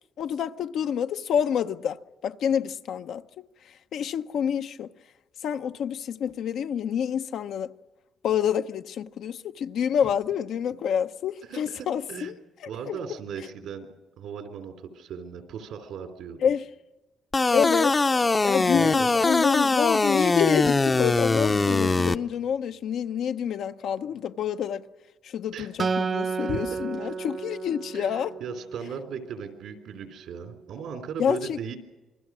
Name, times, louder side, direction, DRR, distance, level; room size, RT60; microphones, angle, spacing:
voice 1, 0.2-3.2 3.9-4.9 5.4-7.7 8.2-12.4 12.9-13.0 16.4-16.6 17.5-18.0 18.4-24.8 25.2-28.3 31.2-31.6, left 8 dB, 75° left, 0.7 m, -28 dB
voice 2, 11.4-12.3 12.7-13.9 14.2-16.4 18.7-19.1 25.5-25.7 26.4-27.1 27.9-31.8, right 7 dB, 80° right, 3.3 m, -37 dB
sound 1, 17.3-22.2, left 3 dB, 25° left, 0.6 m, -22 dB
Acoustic guitar, 25.8-29.2, right 5 dB, 40° right, 0.7 m, -31 dB
27.0 x 20.5 x 6.2 m
cardioid pair, 90°, 0 cm